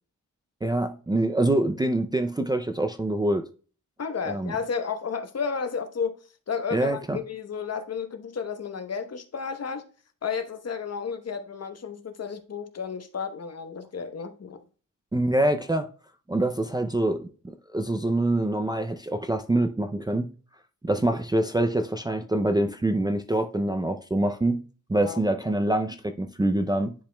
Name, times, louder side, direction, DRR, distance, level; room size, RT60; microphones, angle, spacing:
voice 1, 0.6-3.4 4.3-4.5 6.7-7.2 15.1-15.9 16.3-17.3 17.7-20.3 20.9-26.9, right 1 dB, 15° right, 0.4 m, -25 dB
voice 2, 4.0-6.2 6.5-9.8 10.2-14.6 25.0-25.2, left 6 dB, 50° left, 1.0 m, -32 dB
10.5 x 5.0 x 2.2 m
wide cardioid pair, 155°, 33 cm